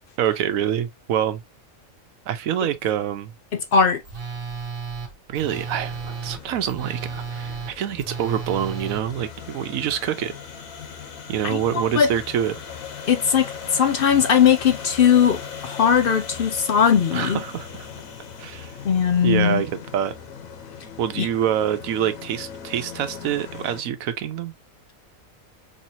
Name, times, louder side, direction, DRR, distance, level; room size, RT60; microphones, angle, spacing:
voice 1, 0.2-1.4 2.3-3.3 5.3-10.3 11.3-12.5 17.1-17.9 18.4-18.7 19.2-20.1 21.0-24.5, right 10 dB, 85° right, 1.1 m, -26 dB
voice 2, 3.7-4.0 11.4-12.1 13.1-17.4 18.8-19.6 21.2-21.3, left 7 dB, 60° left, 0.6 m, -19 dB
Telephone, 4.0-9.0, right 5 dB, 45° right, 1.0 m, -33 dB
sound 1, 5.3-23.8, left 7 dB, 90° left, 1.4 m, -39 dB
4.3 x 3.2 x 2.6 m
omnidirectional pair, 1.4 m